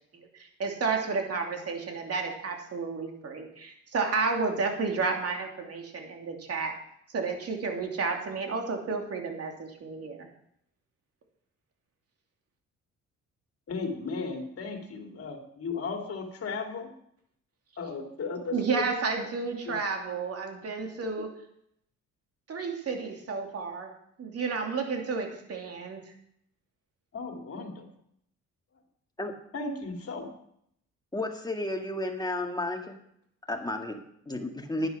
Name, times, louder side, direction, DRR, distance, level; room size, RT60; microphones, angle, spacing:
voice 1, 0.1-6.7 7.1-10.3 18.5-21.3 22.5-23.9 24.2-26.0 34.8-34.9, right 4 dB, 50° right, 3 dB, 2.9 m, -31 dB
voice 2, 13.7-16.9 17.8-19.0 19.7-19.8 27.1-27.9 29.5-30.3, left 4 dB, 50° left, 3 dB, 2.6 m, -35 dB
voice 3, 31.1-33.0 33.5-34.9, left 1 dB, 15° left, 3 dB, 2.0 m, -32 dB
10.5 x 10.0 x 5.9 m, 0.71 s
cardioid pair, 90°, 30 cm